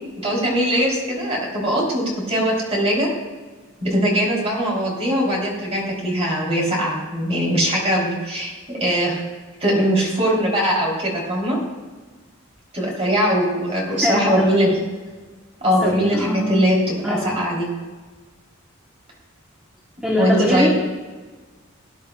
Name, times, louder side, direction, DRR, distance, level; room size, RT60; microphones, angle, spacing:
voice 1, 0.2-3.1 3.8-9.2 9.6-11.6 12.7-14.8 15.6-17.7 20.2-20.7, equal, 30° right, -3 dB, 3.5 m, -21 dB
voice 2, 14.0-14.8 15.8-16.6 17.0-17.4 20.0-20.7, equal, 5° right, -3 dB, 1.1 m, -22 dB
18.5 x 10.5 x 2.4 m, 1.3 s
head